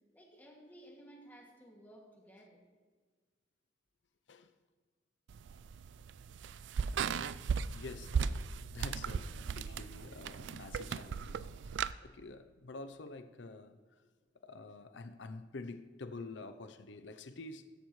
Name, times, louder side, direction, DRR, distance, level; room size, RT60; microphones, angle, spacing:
voice 1, 0.1-2.6, right 1 dB, 10° left, 2.2 m, -56 dB
sound 1, 5.3-11.9, right 6 dB, 85° right, 0.4 m, -37 dB
voice 2, 7.7-11.8 12.0-13.8 14.4-17.7, left 3 dB, 85° left, 0.6 m, -48 dB
16.0 x 13.5 x 3.2 m
head